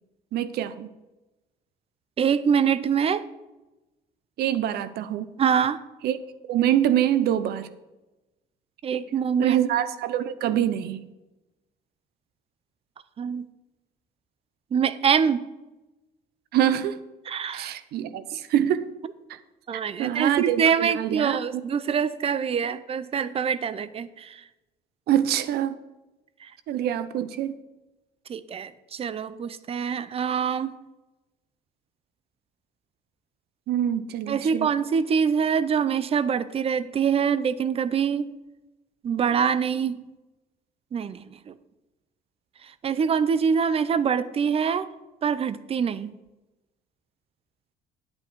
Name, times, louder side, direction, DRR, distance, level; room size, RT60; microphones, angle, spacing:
voice 1, 0.3-0.9 4.4-5.3 6.0-6.2 6.5-7.7 9.4-11.0 16.5-17.0 17.5-18.9 19.3-19.4 20.0-21.6 25.1-25.8 26.7-27.5 33.7-34.7, right 11 dB, 70° right, 14 dB, 0.7 m, -25 dB
voice 2, 2.2-3.2 5.4-5.8 8.8-9.6 13.2-13.5 14.7-15.4 17.3-17.7 19.7-24.4 26.4-26.5 28.3-30.7 34.3-38.3 39.0-40.0 40.9-41.5 42.8-44.9 45.2-46.1, right 7 dB, 35° right, 16 dB, 0.6 m, -24 dB
9.9 x 8.6 x 4.6 m, 1.0 s
cardioid pair, 110°, 17 cm